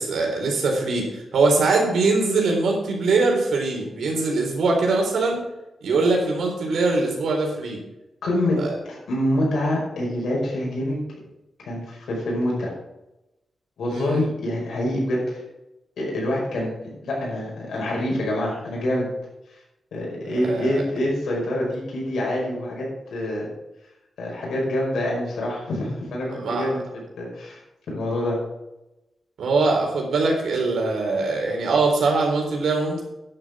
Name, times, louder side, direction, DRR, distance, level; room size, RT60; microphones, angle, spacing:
voice 1, 0.0-5.4 5.8-7.8 8.6-8.8 13.9-14.2 20.4-20.8 26.3-26.6 29.4-33.0, right 3 dB, 90° right, 0 dB, 3.9 m, -22 dB
voice 2, 8.2-8.6 8.9-11.0 11.6-12.7 13.8-15.4 16.0-19.1 19.9-23.5 24.2-27.6 27.9-28.4, left 1 dB, 90° left, -3 dB, 5.4 m, -26 dB
11.0 x 7.9 x 6.2 m, 0.96 s
wide cardioid pair, 170°, 0 cm